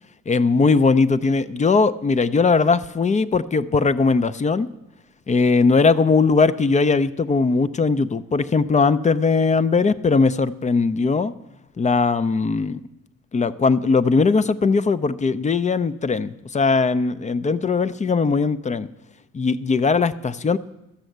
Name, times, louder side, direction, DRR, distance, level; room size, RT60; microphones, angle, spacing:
voice 1, 0.3-4.7 5.3-11.3 11.8-12.8 13.3-18.9 19.3-20.6, left 4 dB, 25° left, 15 dB, 0.5 m, -19 dB
13.0 x 6.2 x 7.9 m, 0.95 s
cardioid pair, 90°, 30 cm